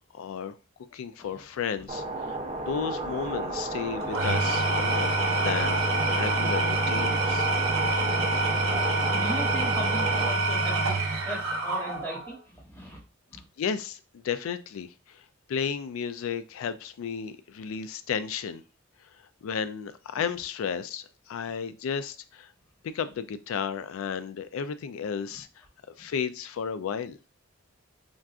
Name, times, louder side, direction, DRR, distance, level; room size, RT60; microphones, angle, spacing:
voice 1, 0.1-0.5 0.9-7.5 13.6-15.2 15.5-18.6 19.4-22.5 22.8-25.5 26.0-27.2, left 7 dB, 75° left, 12 dB, 0.3 m, -33 dB
sound 1, 1.9-10.3, right 2 dB, 30° right, 0.4 m, -33 dB
Engine / Tools, 4.0-12.3, right 2 dB, 80° right, 0.6 m, -26 dB
voice 2, 8.4-13.0 13.3-13.4 26.0-26.1, equal, 10° left, -3 dB, 0.8 m, -39 dB
3.8 x 2.3 x 2.4 m, 0.32 s
head